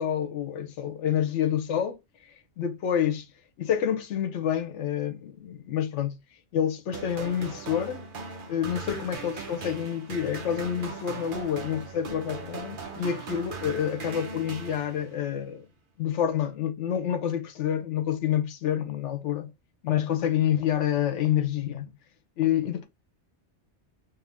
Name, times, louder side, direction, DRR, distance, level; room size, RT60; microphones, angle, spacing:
voice 1, 0.0-2.0 2.6-3.2 3.6-6.2 6.5-8.0 8.5-15.7 16.0-19.5 19.8-21.9 22.4-22.9, left 9 dB, 90° left, 1.0 m, -28 dB
sound 1, 6.9-15.3, right 4 dB, 50° right, 0.9 m, -39 dB
3.2 x 2.5 x 3.4 m
omnidirectional pair, 1.2 m